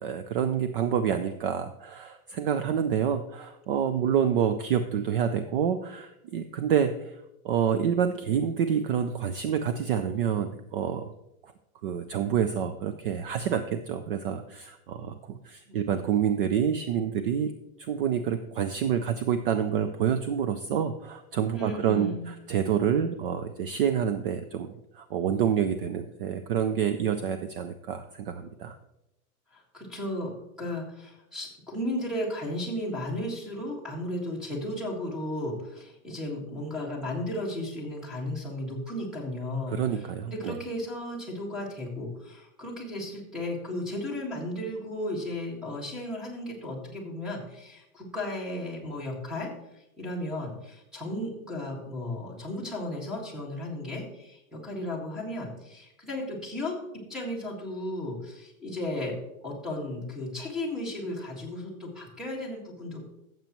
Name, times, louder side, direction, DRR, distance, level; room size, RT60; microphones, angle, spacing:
voice 1, 0.0-7.2 7.4-11.1 11.8-17.5 17.8-28.8 39.7-40.6, right 8 dB, 45° right, 9 dB, 0.5 m, -28 dB
voice 2, 21.5-22.3 29.5-56.8 57.1-59.1 59.4-63.0, left 1 dB, ahead, -2 dB, 1.7 m, -35 dB
14.0 x 7.5 x 3.0 m, 0.86 s
supercardioid pair, 165°, 42 cm